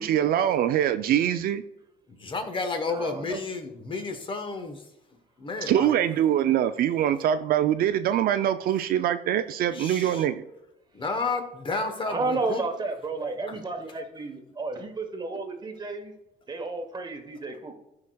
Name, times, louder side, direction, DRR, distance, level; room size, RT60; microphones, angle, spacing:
voice 1, 0.0-1.6 5.7-10.4, right 10 dB, 60° right, 11 dB, 0.4 m, -23 dB
voice 2, 2.1-4.8 5.4-5.9 9.7-10.3 10.9-12.6 13.5-13.6, left 3 dB, 30° left, 7 dB, 1.0 m, -31 dB
voice 3, 2.9-3.4 11.1-11.2 12.1-16.1 16.5-17.7, right 3 dB, 25° right, 5 dB, 1.1 m, -32 dB
13.0 x 4.8 x 2.3 m, 0.89 s
cardioid pair, 110°, 17 cm